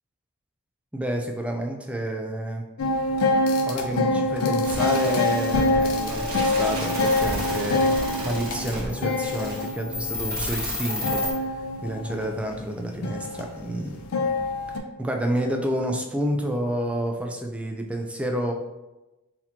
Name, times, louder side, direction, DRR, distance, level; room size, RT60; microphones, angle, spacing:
voice 1, 0.9-2.6 3.6-7.9 8.2-11.2 11.8-14.1 15.0-18.5, right 1 dB, 5° right, 2 dB, 0.3 m, -29 dB
sound 1, 2.8-14.8, left 2 dB, 70° left, 0.4 m, -26 dB
sound 2, 4.6-11.3, equal, 45° right, 1.4 m, -32 dB
4.1 x 2.8 x 2.8 m, 1.0 s
head